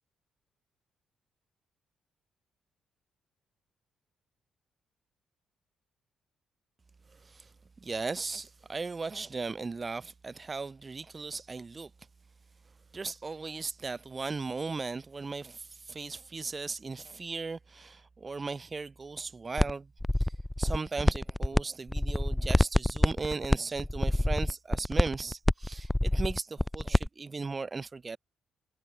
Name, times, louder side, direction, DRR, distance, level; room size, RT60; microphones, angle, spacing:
voice 1, 7.1-7.5 7.8-11.9 12.9-19.9 20.2-20.3 20.6-28.2, right 4 dB, 30° right, 4.6 m, -37 dB
sound 1, 19.6-19.7 20.0-21.6 21.9-27.1, left 1 dB, 10° left, 0.5 m, -26 dB
cardioid pair, 90°, 0 cm